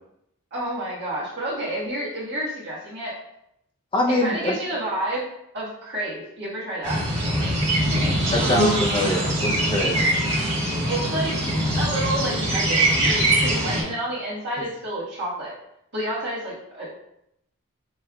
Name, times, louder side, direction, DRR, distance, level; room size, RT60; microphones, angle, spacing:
voice 1, 0.5-3.1 4.1-5.2 5.5-7.5 10.9-11.4 11.8-15.6 15.9-16.9, right 1 dB, 50° right, -6 dB, 1.5 m, -29 dB
voice 2, 3.9-4.6 8.3-10.0, left 1 dB, 25° left, -2 dB, 0.6 m, -24 dB
sound 1, 6.8-13.8, right 1 dB, 30° right, 1.3 m, -22 dB
5.2 x 3.3 x 2.3 m, 0.78 s
head